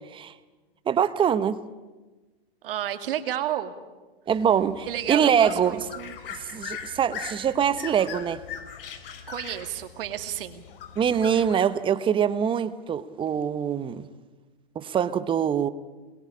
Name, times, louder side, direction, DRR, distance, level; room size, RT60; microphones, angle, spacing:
voice 1, 0.9-1.6 4.3-5.8 6.4-8.4 11.0-14.0 14.7-15.7, right 8 dB, 15° right, 1.0 m, -24 dB
voice 2, 2.6-3.7 4.9-6.1 9.3-10.6, right 11 dB, 65° right, 2.5 m, -31 dB
sound 1, 4.3-11.6, left 7 dB, 60° left, 3.8 m, -41 dB
28.5 x 21.5 x 8.6 m
hypercardioid pair, 130°, 30 cm